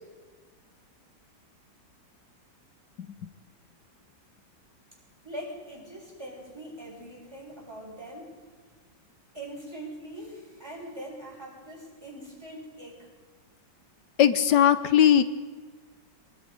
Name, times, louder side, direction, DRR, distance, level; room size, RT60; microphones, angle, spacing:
voice 1, 5.2-8.3 9.3-13.1, right 1 dB, 15° right, -2 dB, 7.4 m, -42 dB
voice 2, 14.2-15.2, left 9 dB, 65° left, 11 dB, 1.5 m, -19 dB
24.0 x 21.5 x 5.3 m, 1.4 s
omnidirectional pair, 2.0 m